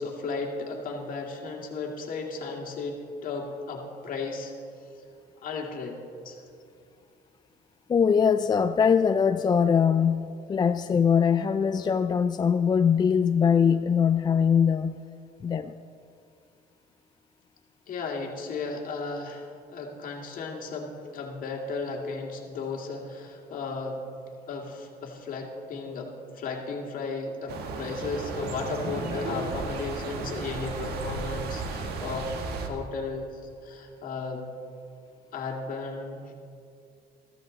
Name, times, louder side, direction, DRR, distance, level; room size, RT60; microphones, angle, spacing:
voice 1, 0.0-4.5 5.4-6.0 6.2-6.4 17.9-24.0 24.5-32.4 32.6-33.3 33.6-34.5 35.3-36.2, left 4 dB, 55° left, 1 dB, 2.1 m, -35 dB
voice 2, 7.9-15.0 15.4-15.7, left 7 dB, 25° left, 9 dB, 0.3 m, -22 dB
sound 1, 27.5-32.7, right 3 dB, 70° right, 1.5 m, -34 dB
14.0 x 13.5 x 3.9 m, 2.5 s
cardioid pair, 110°, 17 cm